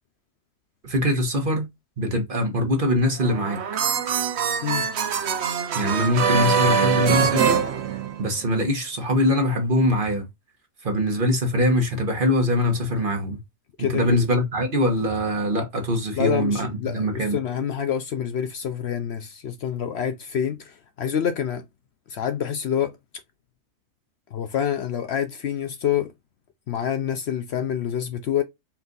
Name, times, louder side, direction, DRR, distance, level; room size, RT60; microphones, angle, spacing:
voice 1, 0.8-1.7 2.0-3.6 5.7-7.6 8.2-10.2 10.8-13.4 13.8-17.4, left 1 dB, 45° right, 1.2 m, -23 dB
sound 1, 3.2-8.5, right 6 dB, 60° right, 0.9 m, -23 dB
voice 2, 13.8-14.2 16.2-21.6 22.1-23.0 24.3-26.1 26.7-28.4, left 9 dB, 65° left, 0.8 m, -27 dB
4.5 x 2.5 x 3.8 m
omnidirectional pair, 1.4 m